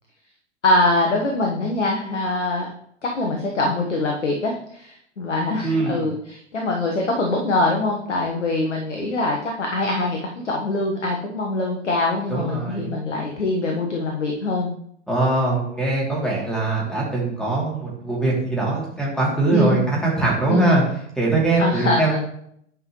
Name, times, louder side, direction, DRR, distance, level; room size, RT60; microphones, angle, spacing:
voice 1, 0.6-2.7 3.0-14.7 19.5-19.8 20.5-20.8 21.6-22.2, left 2 dB, 75° left, 1 dB, 1.2 m, -23 dB
voice 2, 5.6-6.1 12.3-12.9 15.1-20.8 21.2-22.2, right 2 dB, ahead, -4 dB, 2.6 m, -22 dB
9.3 x 5.3 x 3.0 m, 0.70 s
figure-of-eight pair, 100°, 36 cm